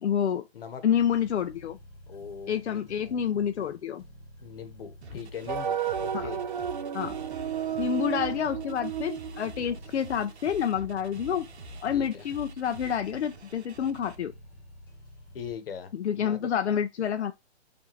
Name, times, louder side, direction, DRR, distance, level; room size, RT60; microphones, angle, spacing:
voice 1, 0.0-0.5 0.8-1.8 2.5-4.0 6.1-6.3 6.9-7.1 7.8-11.5 11.8-14.3 15.9-17.3, left 8 dB, 85° left, 0.5 m, -28 dB
sound 1, 0.9-15.6, equal, 5° left, 1.3 m, -51 dB
voice 2, 2.1-2.9 4.4-6.4 11.9-12.3 15.3-16.4, left 7 dB, 60° left, 1.0 m, -41 dB
sound 2, 5.0-14.2, right 1 dB, 80° right, 1.1 m, -45 dB
sound 3, 5.5-10.3, right 9 dB, 45° right, 0.6 m, -33 dB
5.0 x 2.6 x 3.1 m
hypercardioid pair, 145°, 33 cm